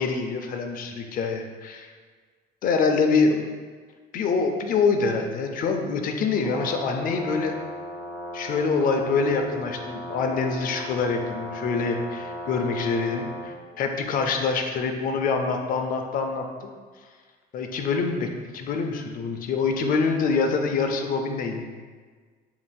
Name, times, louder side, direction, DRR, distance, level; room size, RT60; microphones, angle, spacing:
voice 1, 0.0-1.9 2.6-3.4 4.1-7.5 8.3-16.5 17.5-21.7, left 4 dB, 55° left, 4 dB, 0.5 m, -25 dB
Brass instrument, 6.4-13.5, equal, 10° right, 1.5 m, -36 dB
6.8 x 2.6 x 2.3 m, 1.5 s
cardioid pair, 110°, 17 cm